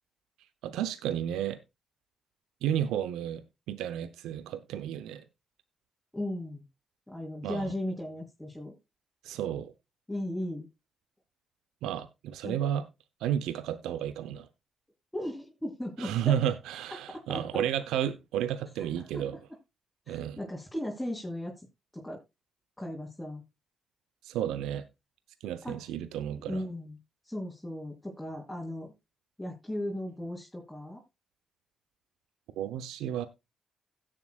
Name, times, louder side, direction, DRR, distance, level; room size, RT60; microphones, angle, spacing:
voice 1, 0.6-1.6 2.6-5.2 7.4-7.7 9.2-9.7 11.8-12.9 13.2-14.5 16.0-19.4 20.1-20.4 24.2-24.9 25.4-26.6 32.6-33.3, right 10 dB, 80° right, 0.8 m, -32 dB
voice 2, 6.1-6.6 7.1-8.7 10.1-10.7 12.4-12.6 15.1-16.4 17.1-17.6 19.0-19.2 20.1-21.5 21.9-22.2 22.8-23.4 25.6-25.8 26.5-27.0 27.3-28.9 29.4-31.0, left 1 dB, 10° left, 3.7 m, -36 dB
16.5 x 7.5 x 2.4 m
hypercardioid pair, 45°, 0 cm